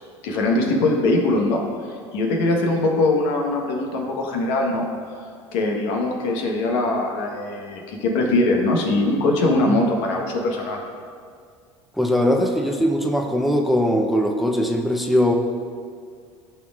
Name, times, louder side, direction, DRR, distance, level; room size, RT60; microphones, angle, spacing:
voice 1, 0.2-4.9 5.2-5.3 5.5-10.8, left 2 dB, 75° left, 0 dB, 1.2 m, -22 dB
voice 2, 12.0-15.3, equal, ahead, 2 dB, 0.7 m, -20 dB
13.5 x 4.5 x 2.4 m, 2.1 s
hypercardioid pair, 80°, 15 cm